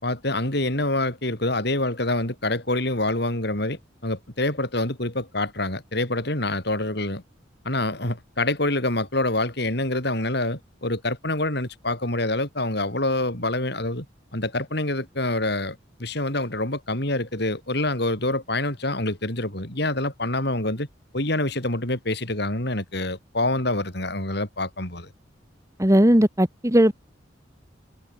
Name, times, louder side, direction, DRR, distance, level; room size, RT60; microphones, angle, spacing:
voice 1, 0.0-7.2 7.6-14.1 14.3-20.9 21.1-25.1, left 2 dB, 60° left, 6.1 m, -26 dB
voice 2, 25.8-27.0, equal, 15° right, 1.9 m, -18 dB
head